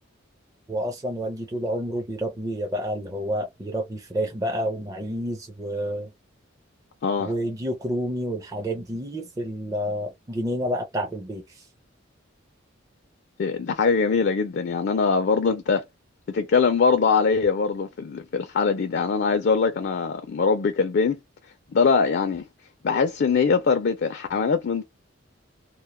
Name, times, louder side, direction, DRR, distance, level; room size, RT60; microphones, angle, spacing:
voice 1, 0.7-6.1 7.2-11.4, equal, 20° right, 0.5 m, -29 dB
voice 2, 7.0-7.3 13.4-15.8 16.3-21.2 21.7-22.5 22.8-24.8, left 5 dB, 60° left, 0.4 m, -22 dB
2.2 x 2.1 x 2.9 m
head